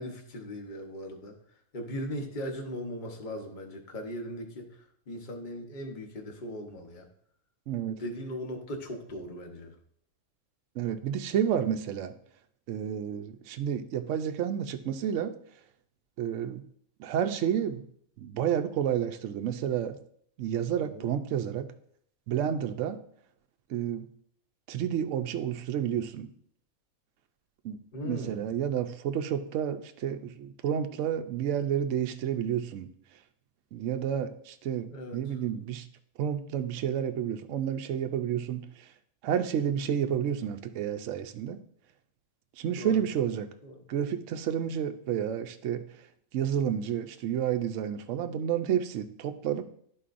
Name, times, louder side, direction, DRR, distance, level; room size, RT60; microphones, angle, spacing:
voice 1, 0.0-1.4 1.7-7.1 8.0-9.7 20.8-21.1 27.9-28.4 34.9-35.3 42.8-43.0 43.6-43.8, equal, 35° left, 3 dB, 1.1 m, -38 dB
voice 2, 7.7-8.0 10.8-12.1 12.7-15.3 16.2-16.6 17.0-17.8 18.2-20.0 20.4-21.7 22.3-23.0 23.7-24.1 24.7-26.3 27.6-27.8 28.0-32.9 33.7-35.9 36.2-38.9 39.2-41.6 42.6-43.5 43.9-45.8 46.3-49.7, right 9 dB, 70° right, 7 dB, 0.9 m, -30 dB
12.5 x 4.6 x 2.5 m, 0.64 s
omnidirectional pair, 1.5 m